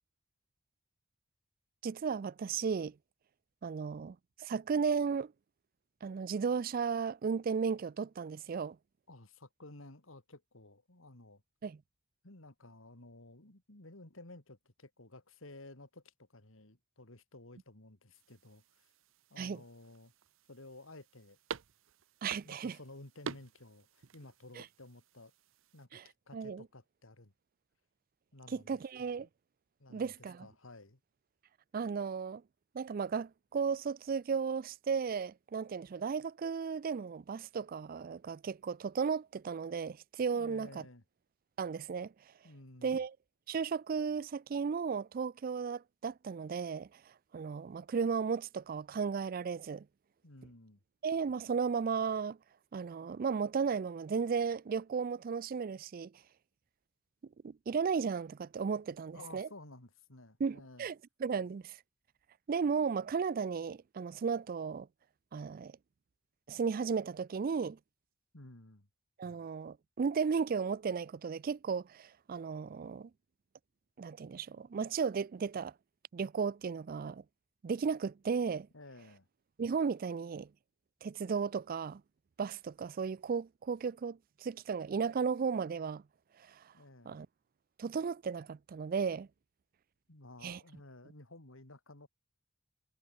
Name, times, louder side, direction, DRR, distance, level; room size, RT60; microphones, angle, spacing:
voice 1, 1.8-2.9 3.6-5.3 6.0-8.8 11.6-11.8 19.4-19.6 22.2-22.8 24.6-24.7 25.9-26.0 26.3-26.7 28.5-29.3 29.9-30.5 31.7-32.4 32.7-40.8 41.6-42.1 42.8-43.1 43.5-47.0 47.3-49.9 51.0-52.4 52.7-56.1 57.4-59.5 60.4-61.8 62.5-64.9 65.3-65.7 66.5-67.8 69.2-73.1 74.0-75.7 76.1-77.2 77.6-78.7 79.6-80.5 81.0-82.0 82.4-86.0 86.5-86.6 87.1-87.3 87.8-89.3 90.4-90.6, right 5 dB, 45° right, 0.4 m, -35 dB
voice 2, 9.1-11.4 12.2-18.9 19.3-20.1 20.5-21.4 22.4-25.3 25.7-27.3 28.3-28.8 29.2-29.3 29.8-31.0 40.3-41.0 42.4-43.0 50.2-50.8 59.1-60.9 68.3-68.9 78.7-79.3 86.7-87.2 90.1-92.1, left 2 dB, 80° left, 3.0 m, -54 dB
sound 1, 18.1-25.9, right 6 dB, 80° right, 0.7 m, -49 dB
head